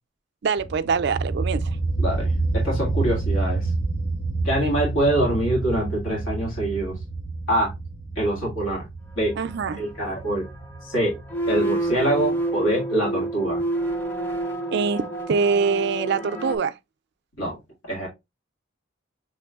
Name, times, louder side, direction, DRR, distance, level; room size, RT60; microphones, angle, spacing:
voice 1, 0.4-1.8 9.4-9.8 14.7-16.8, right 5 dB, 55° right, 0.4 m, -24 dB
sound 1, 0.6-12.1, right 3 dB, 45° left, 1.3 m, -28 dB
voice 2, 2.0-3.7 4.4-7.0 7.5-7.7 8.2-8.8 9.2-9.3 9.8-10.5 10.8-11.2 11.5-13.6 17.4-17.6 17.9-18.1, right 1 dB, 80° left, 2.0 m, -24 dB
sound 2, 9.3-16.6, right 2 dB, 10° left, 0.6 m, -29 dB
6.0 x 3.2 x 2.3 m
head